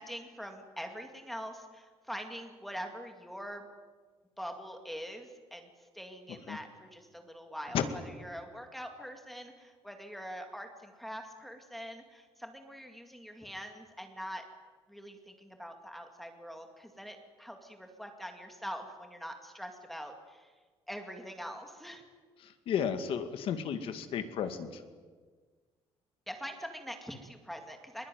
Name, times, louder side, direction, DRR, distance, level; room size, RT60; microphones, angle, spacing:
voice 1, 0.0-3.7 4.4-5.7 5.9-14.4 14.9-20.5 20.9-22.0 26.3-28.1, equal, ahead, 4 dB, 2.2 m, -44 dB
voice 2, 22.7-24.8, left 8 dB, 60° left, 8 dB, 2.2 m, -33 dB
22.5 x 21.5 x 9.2 m, 1.5 s
cardioid pair, 170°, 10 cm